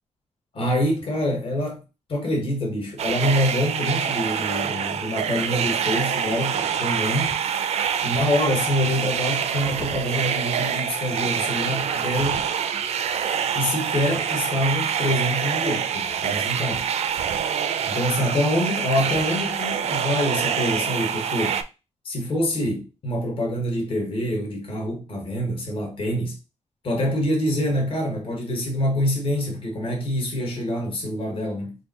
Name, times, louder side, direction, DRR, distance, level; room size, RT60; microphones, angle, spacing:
voice 1, 0.5-1.8 2.1-7.4 8.0-12.5 13.5-16.9 17.9-21.6 22.0-26.4 26.8-31.8, left 1 dB, 45° left, 1.3 m, -25 dB
sound 1, 3.0-21.6, right 8 dB, 60° right, 0.4 m, -26 dB
3.6 x 2.6 x 4.1 m
wide cardioid pair, 170°, 12 cm